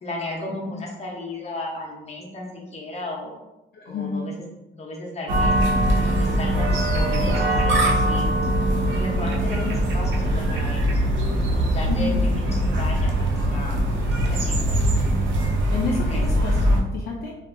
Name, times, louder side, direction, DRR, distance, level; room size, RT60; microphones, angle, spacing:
voice 1, 0.0-3.3 3.8-4.3 4.7-5.6 6.0-8.4 8.9-11.0 11.5-13.8 14.3-14.8 16.1-16.2, left 2 dB, 35° left, -2 dB, 0.8 m, -34 dB
voice 2, 3.7-4.3 9.5-9.6 11.9-12.2 14.7-15.0 15.7-17.4, left 3 dB, 55° left, -2 dB, 0.4 m, -30 dB
sound 1, 5.3-16.8, right 1 dB, 75° right, 0.6 m, -22 dB
2.6 x 2.4 x 2.5 m, 0.99 s
cardioid pair, 90°, 20 cm